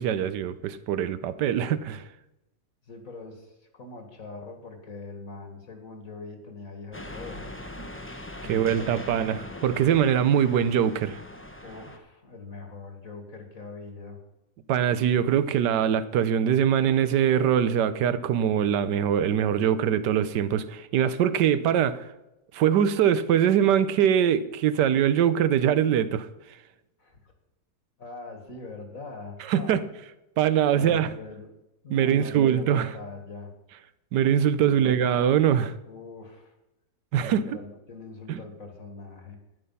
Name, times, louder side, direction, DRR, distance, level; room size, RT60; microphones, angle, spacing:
voice 1, 0.0-2.0 7.8-7.9 8.5-11.2 14.7-22.1 22.5-26.3 29.5-29.8 30.4-31.1 31.9-32.9 34.1-35.7 37.1-37.6 38.3-38.4, right 9 dB, 75° right, 1.3 m, -23 dB
voice 2, 2.9-7.4 8.4-9.1 11.6-14.2 27.0-27.3 28.0-29.7 30.6-31.5 31.8-33.5 34.7-35.0 35.9-36.5 37.1-39.4, left 3 dB, 50° left, 2.1 m, -42 dB
sound 1, 6.9-12.0, left 1 dB, 10° left, 0.7 m, -41 dB
13.0 x 10.0 x 5.5 m
omnidirectional pair, 1.9 m